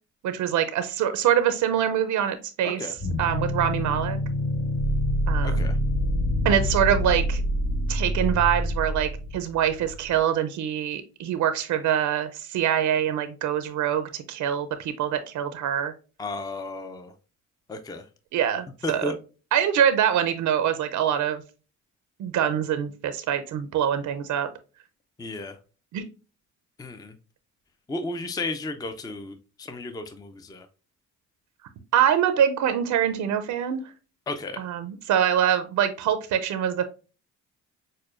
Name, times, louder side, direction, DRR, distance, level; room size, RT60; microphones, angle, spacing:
voice 1, 0.2-2.9 3.2-4.2 5.3-5.7 6.4-7.4 7.9-15.9 18.3-19.1 19.5-21.4 22.2-24.5 25.9-26.0 31.9-33.8 34.6-36.8, right 9 dB, 75° right, 10 dB, 0.6 m, -24 dB
sound 1, 3.0-10.1, equal, 60° left, 1.1 m, -26 dB
voice 2, 5.4-5.8 16.2-17.1 17.7-18.0 18.8-19.2 25.2-25.6 26.8-27.1 27.9-30.7 34.3-34.6, left 2 dB, 15° left, 8 dB, 0.4 m, -33 dB
6.4 x 2.2 x 2.4 m, 0.34 s
cardioid pair, 90°, 30 cm